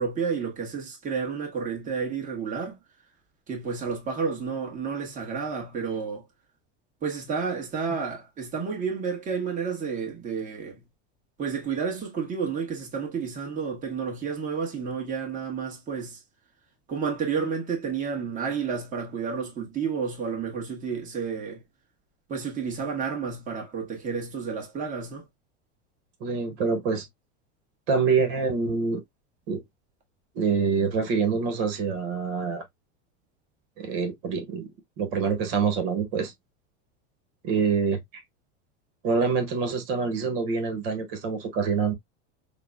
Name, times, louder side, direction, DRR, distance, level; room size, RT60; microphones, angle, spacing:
voice 1, 0.0-2.8 3.5-6.2 7.0-10.8 11.4-16.2 16.9-21.6 22.3-25.2, right 6 dB, 20° right, 1.3 m, -31 dB
voice 2, 26.2-27.0 27.9-29.0 29.5-29.6 30.3-32.6 33.8-34.7 35.0-36.3 37.4-38.2 39.0-41.9, right 5 dB, 60° right, 1.4 m, -26 dB
5.7 x 2.2 x 2.3 m
supercardioid pair, 145°, 35 cm